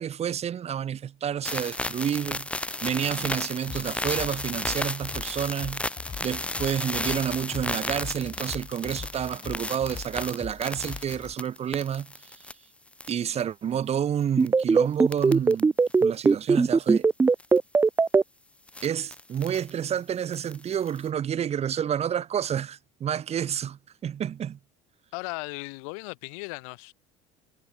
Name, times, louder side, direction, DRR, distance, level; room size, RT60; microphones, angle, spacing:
voice 1, 0.0-2.5 2.8-5.9 6.2-12.1 13.1-15.7 16.0-17.1 18.8-24.6, right 9 dB, 40° right, 2.3 m, -29 dB
sound 1, 1.4-12.5 12.9-13.4 14.4-14.6 15.1-15.6 15.9-16.0 17.4-17.6 18.7-19.7 20.3-21.1, left 2 dB, 5° left, 1.0 m, -34 dB
sound 2, 3.7-11.3, left 6 dB, 25° left, 1.5 m, -41 dB
sound 3, 14.4-18.2, right 4 dB, 15° right, 0.3 m, -19 dB
voice 2, 25.1-26.9, left 32 dB, 85° left, 5.6 m, -36 dB
supercardioid pair, 105°, 17 cm